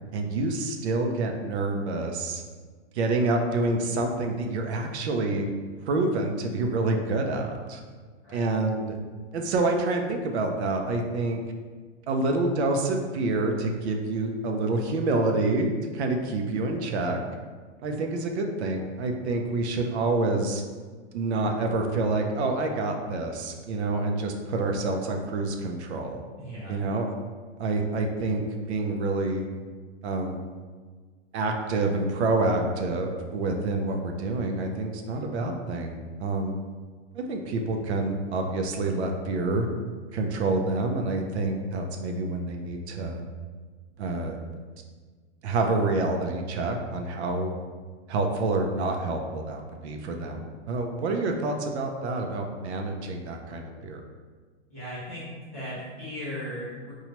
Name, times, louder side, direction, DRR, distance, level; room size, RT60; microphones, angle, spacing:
voice 1, 0.1-2.4 2.9-5.5 5.8-7.8 8.3-9.0 9.3-11.4 12.1-17.2 17.8-20.6 21.1-26.2 26.7-27.1 27.6-29.4 30.0-30.4 31.3-36.6 37.1-39.7 40.1-43.2 44.0-44.4 45.4-47.5 48.1-54.0, right 2 dB, 65° right, 3 dB, 0.5 m, -27 dB
voice 2, 26.4-26.8 54.7-56.9, equal, 15° left, -14 dB, 0.3 m, -37 dB
2.9 x 2.3 x 2.9 m, 1.5 s
supercardioid pair, 175°, 36 cm